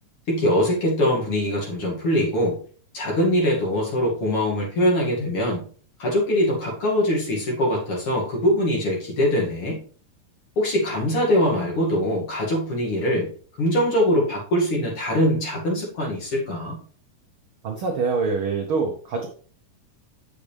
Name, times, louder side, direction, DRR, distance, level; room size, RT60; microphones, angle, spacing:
voice 1, 0.3-2.6 2.9-5.7 6.0-9.8 10.6-13.3 13.6-16.8, equal, 45° left, -2 dB, 2.8 m, -22 dB
voice 2, 17.6-19.3, right 4 dB, 65° right, 2 dB, 1.3 m, -25 dB
8.3 x 6.9 x 3.4 m, 0.43 s
omnidirectional pair, 3.8 m